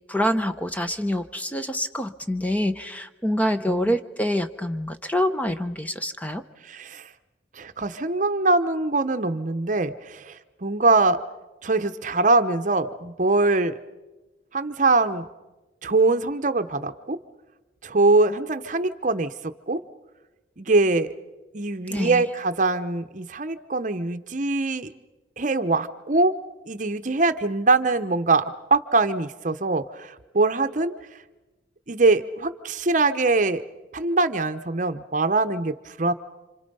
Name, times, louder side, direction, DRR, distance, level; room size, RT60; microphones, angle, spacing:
voice 1, 0.1-6.4 21.9-22.2, equal, 10° left, 8 dB, 0.8 m, -26 dB
voice 2, 6.6-7.1 7.6-11.2 11.6-13.8 14.5-15.3 15.8-17.2 17.8-19.3 19.7-19.8 20.6-21.1 21.5-24.9 25.4-26.3 26.7-30.9 31.9-33.6 33.9-36.1, right 3 dB, 45° right, 11 dB, 0.8 m, -23 dB
28.5 x 26.5 x 5.5 m, 1.1 s
head